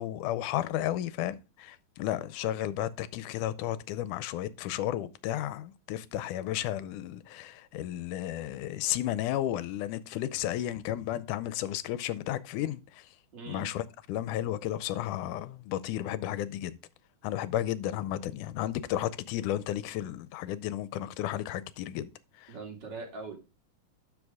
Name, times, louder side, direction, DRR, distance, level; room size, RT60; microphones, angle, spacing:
voice 1, 0.0-13.1 13.5-16.8 17.2-22.1 22.4-22.5, left 12 dB, 85° left, 2.1 m, -33 dB
voice 2, 13.3-13.7 22.5-23.4, right 4 dB, 40° right, 2.5 m, -41 dB
12.5 x 5.2 x 3.5 m
omnidirectional pair, 3.6 m